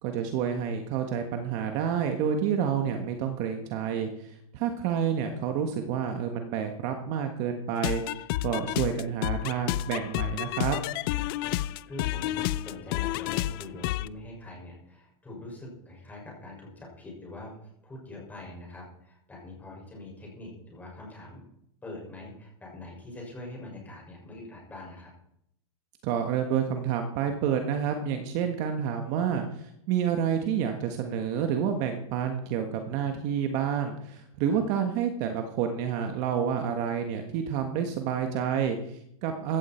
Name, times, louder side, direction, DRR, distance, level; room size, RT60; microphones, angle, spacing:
voice 1, 0.0-10.8 26.0-39.6, right 8 dB, 35° right, 5 dB, 1.5 m, -29 dB
sound 1, 7.8-14.1, left 16 dB, 40° left, 0.4 m, -30 dB
voice 2, 11.9-17.5 17.8-21.4 21.8-25.1 34.5-34.6, left 2 dB, 10° left, -2 dB, 6.3 m, -43 dB
16.0 x 13.0 x 4.5 m, 0.75 s
supercardioid pair, 160°, 19 cm